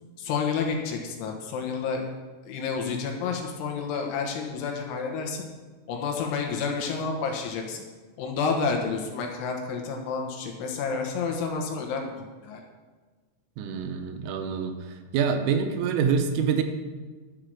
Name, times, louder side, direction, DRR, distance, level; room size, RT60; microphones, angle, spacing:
voice 1, 0.2-2.1 2.4-5.5 5.9-7.8 8.2-12.1 12.4-12.6, left 5 dB, 75° left, 1 dB, 3.5 m, -30 dB
voice 2, 13.6-14.7 15.1-16.6, right 6 dB, 90° right, 6 dB, 3.4 m, -25 dB
11.5 x 5.8 x 6.3 m, 1.4 s
omnidirectional pair, 5.8 m